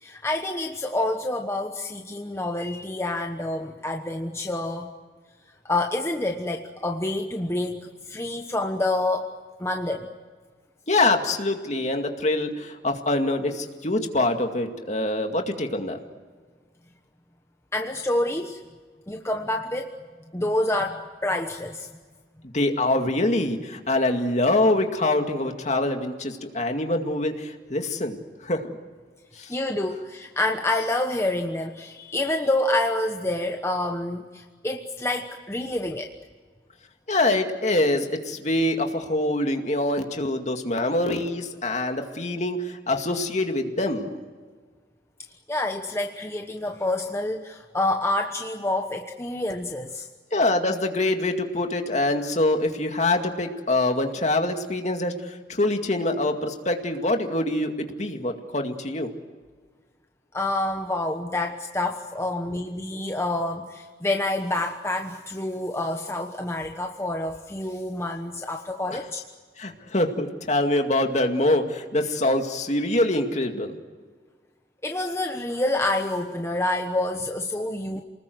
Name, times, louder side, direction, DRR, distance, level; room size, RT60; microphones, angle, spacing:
voice 1, 0.0-4.9 5.6-9.3 9.6-10.1 17.7-18.6 19.1-20.0 20.3-21.9 29.5-36.1 45.5-50.1 60.3-69.2 74.8-78.0, left 2 dB, 15° left, 3 dB, 1.1 m, -27 dB
voice 2, 10.9-16.0 22.4-28.8 29.4-29.5 37.1-44.2 50.3-59.1 68.9-69.0 69.6-73.8, left 2 dB, 40° left, 4 dB, 2.2 m, -25 dB
29.0 x 20.0 x 7.9 m, 1.5 s
head